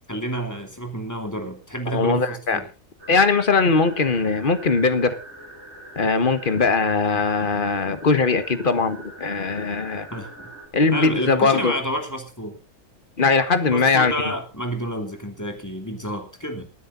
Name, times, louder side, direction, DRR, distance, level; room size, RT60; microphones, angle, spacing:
voice 1, 0.1-2.6 10.1-10.5 10.9-12.6 13.7-16.7, right 1 dB, 15° left, 3 dB, 2.9 m, -29 dB
voice 2, 1.9-2.6 3.1-5.2 6.0-10.1 10.7-11.7 13.2-14.1, left 4 dB, 40° left, 11 dB, 1.5 m, -20 dB
sound 1, 3.0-10.7, right 2 dB, 55° right, 7.9 m, -42 dB
27.5 x 10.0 x 2.6 m, 0.31 s
omnidirectional pair, 1.4 m